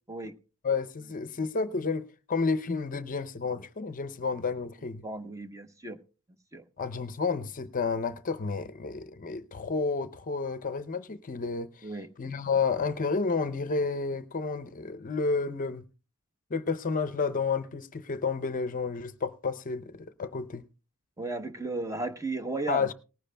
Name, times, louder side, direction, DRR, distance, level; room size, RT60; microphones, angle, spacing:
voice 1, 0.6-5.0 6.8-11.9 12.2-15.8 16.5-20.6 22.7-22.9, left 4 dB, 40° left, 0.6 m, -31 dB
voice 2, 5.0-6.0 6.5-6.6 11.8-12.1 21.2-22.9, right 2 dB, 15° right, 0.8 m, -34 dB
19.0 x 15.5 x 2.2 m
head